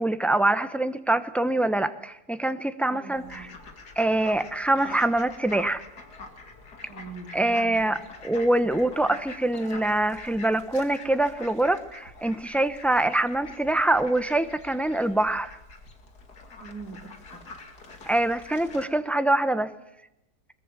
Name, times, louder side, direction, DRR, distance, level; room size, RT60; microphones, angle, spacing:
voice 1, 0.0-3.5 4.0-5.8 7.3-8.0 8.2-15.6 18.1-19.7, right 1 dB, ahead, 10 dB, 0.8 m, -24 dB
voice 2, 2.9-3.5 6.9-8.0 16.6-17.5, right 4 dB, 65° right, 1 dB, 2.8 m, -42 dB
Fowl, 3.1-18.8, left 3 dB, 80° left, 3.1 m, -45 dB
22.0 x 21.5 x 7.7 m, 0.89 s
omnidirectional pair, 1.7 m